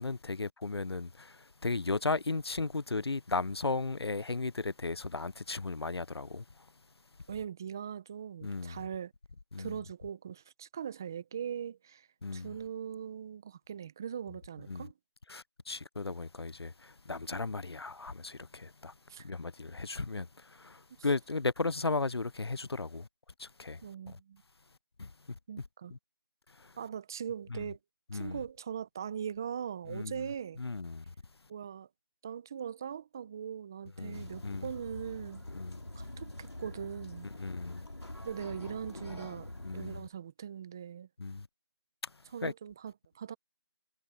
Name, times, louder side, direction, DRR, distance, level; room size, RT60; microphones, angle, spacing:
voice 1, 0.0-6.4 8.4-8.8 9.5-9.8 12.2-12.5 14.7-14.9 15.3-18.9 19.2-23.1 23.4-23.8 24.1-24.2 25.0-25.1 25.9-26.0 26.6-26.7 27.5-27.6 28.1-28.4 29.9-30.2 30.6-31.0 34.0-34.7 35.5-35.8 37.4-37.9 39.6-40.0 41.2-41.5 42.0-42.1 42.4-42.5, left 3 dB, 75° left, 0.6 m, -35 dB
voice 2, 7.3-9.1 9.6-12.1 12.3-14.9 19.1-19.3 23.8-24.4 25.5-25.9 26.8-27.8 28.1-30.6 31.5-31.9 32.2-35.5 36.0-37.3 38.2-41.1 42.3-43.3, right 8 dB, 10° right, 0.7 m, -40 dB
sound 1, 34.1-40.0, left 1 dB, 90° left, 2.4 m, -45 dB
figure-of-eight pair, 170°, 13 cm